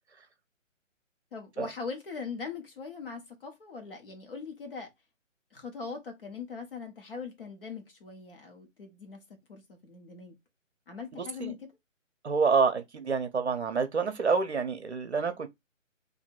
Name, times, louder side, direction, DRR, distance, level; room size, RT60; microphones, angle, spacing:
voice 1, 1.3-4.9 5.5-9.2 9.5-10.4 10.9-11.7, left 5 dB, 45° left, 1.3 m, -41 dB
voice 2, 11.1-11.5 12.2-15.5, right 5 dB, 55° right, 0.8 m, -28 dB
2.9 x 2.7 x 4.3 m
figure-of-eight pair, 145°, 39 cm